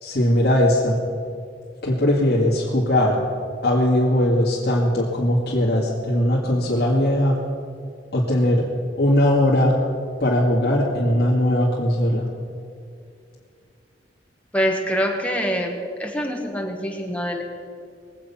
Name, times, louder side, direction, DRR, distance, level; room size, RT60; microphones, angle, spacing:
voice 1, 0.0-1.0 1.8-3.2 3.6-7.4 8.1-8.6 9.0-9.7 10.2-12.3, left 1 dB, 60° left, -5 dB, 2.2 m, -19 dB
voice 2, 14.5-17.4, equal, 10° left, 1 dB, 1.6 m, -25 dB
21.5 x 8.6 x 5.8 m, 2.4 s
head